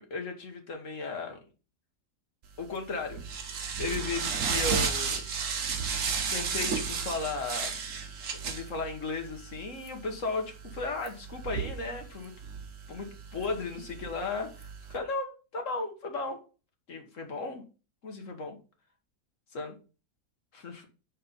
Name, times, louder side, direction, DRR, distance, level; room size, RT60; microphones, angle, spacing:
voice 1, 0.0-1.4 2.6-5.5 6.3-7.8 8.4-12.3 12.9-16.4 16.9-17.6 18.0-18.6 19.5-19.8 20.5-20.9, left 3 dB, 50° left, 1.8 m, -35 dB
sound 1, 2.6-15.0, right 6 dB, 55° right, 1.3 m, -34 dB
5.6 x 4.4 x 5.3 m
omnidirectional pair, 1.8 m